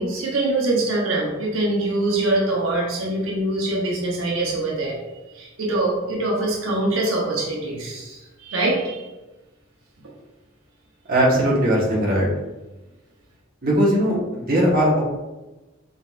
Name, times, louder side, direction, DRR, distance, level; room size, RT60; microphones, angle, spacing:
voice 1, 0.0-5.0 5.3-9.1, right 2 dB, 90° right, -3 dB, 0.9 m, -24 dB
voice 2, 11.1-12.3 13.6-15.0, equal, 45° right, -5 dB, 1.2 m, -19 dB
4.3 x 3.9 x 2.5 m, 1.1 s
head